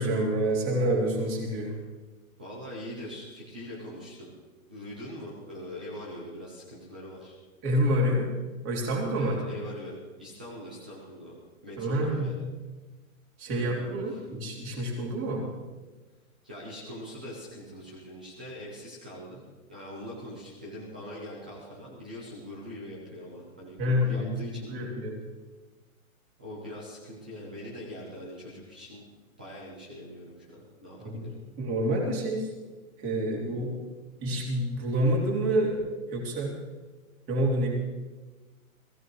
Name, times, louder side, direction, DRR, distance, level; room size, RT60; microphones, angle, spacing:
voice 1, 0.0-1.7 7.6-8.3 8.6-9.5 11.8-12.3 13.4-15.5 23.8-25.1 31.0-31.3 31.6-32.5 33.0-33.8 34.2-35.8 36.1-36.5 37.3-37.7, equal, 25° right, -2 dB, 3.2 m, -27 dB
voice 2, 2.4-4.3 4.7-7.4 9.2-11.4 11.6-12.3 13.5-14.2 16.4-24.9 26.4-29.1 29.4-31.4, equal, 5° right, -4 dB, 0.4 m, -42 dB
21.0 x 15.5 x 3.1 m, 1.3 s
hypercardioid pair, 165°, 43 cm